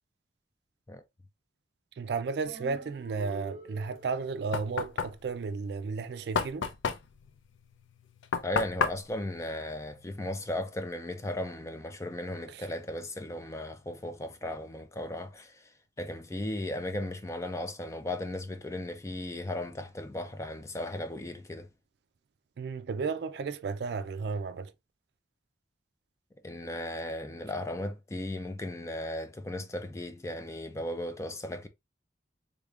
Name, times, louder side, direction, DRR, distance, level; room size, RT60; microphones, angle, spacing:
voice 1, 2.0-6.7 12.5-12.6 22.6-24.7, right 4 dB, 60° right, 0.3 m, -33 dB
sound 1, 2.4-4.4, right 2 dB, 35° right, 0.7 m, -46 dB
Knock, 4.0-10.4, left 5 dB, 85° left, 0.5 m, -34 dB
voice 2, 8.4-15.7 16.0-21.7 26.4-31.7, left 1 dB, 15° left, 0.3 m, -36 dB
3.5 x 3.5 x 2.3 m
head